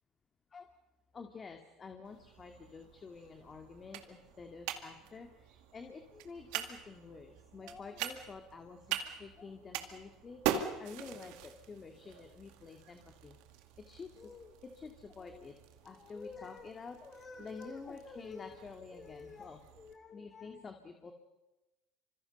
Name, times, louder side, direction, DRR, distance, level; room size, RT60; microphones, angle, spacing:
voice 1, 1.1-13.4 13.8-15.5 15.8-21.1, left 4 dB, 30° left, 5 dB, 2.3 m, -49 dB
sound 1, 2.0-19.9, right 9 dB, 70° right, 2.2 m, -44 dB
27.5 x 26.0 x 5.5 m, 1.1 s
hypercardioid pair, 80°, 0 cm